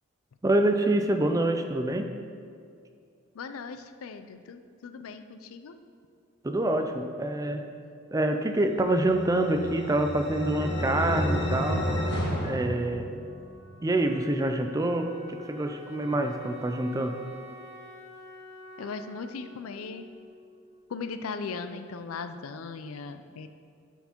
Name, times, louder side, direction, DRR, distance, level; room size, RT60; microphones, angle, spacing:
voice 1, 0.4-2.1 6.4-7.7 8.1-11.9 12.4-13.1 13.8-17.2, right 1 dB, 15° right, 6 dB, 0.3 m, -26 dB
voice 2, 3.3-5.8 18.8-20.1 20.9-23.5, left 4 dB, 85° left, 9 dB, 0.4 m, -38 dB
sound 1, 9.0-13.5, equal, 55° left, 1.2 m, -30 dB
Wind instrument woodwind instrument, 12.4-21.1, equal, 30° right, 0.9 m, -49 dB
9.1 x 4.5 x 4.4 m, 2.4 s
head